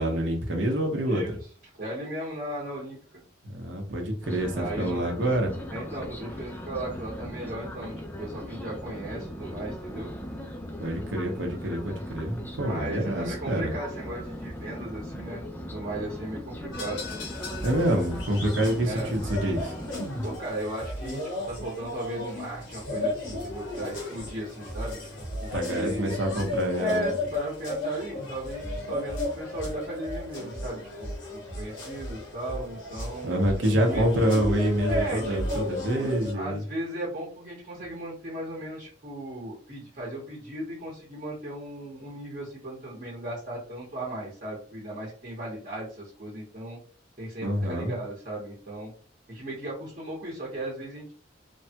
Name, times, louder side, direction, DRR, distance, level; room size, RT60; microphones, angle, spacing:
voice 1, 0.0-1.2 3.4-5.6 10.8-13.7 17.6-19.7 25.5-27.1 33.2-36.6 47.4-47.9, right 1 dB, 75° right, 2 dB, 0.8 m, -27 dB
voice 2, 1.1-1.4 1.8-3.2 4.5-5.1 5.7-10.1 12.6-17.0 18.8-19.1 20.2-21.2 21.5-25.0 25.4-26.2 26.8-33.4 33.8-34.1 34.9-35.7 36.3-46.8 47.2-48.9 49.3-51.1, right 1 dB, 45° right, -5 dB, 1.0 m, -36 dB
sound 1, 4.2-20.4, equal, 10° left, 0.3 m, -39 dB
sound 2, 16.7-36.3, left 1 dB, 85° left, 1.2 m, -34 dB
3.3 x 2.2 x 2.8 m, 0.43 s
head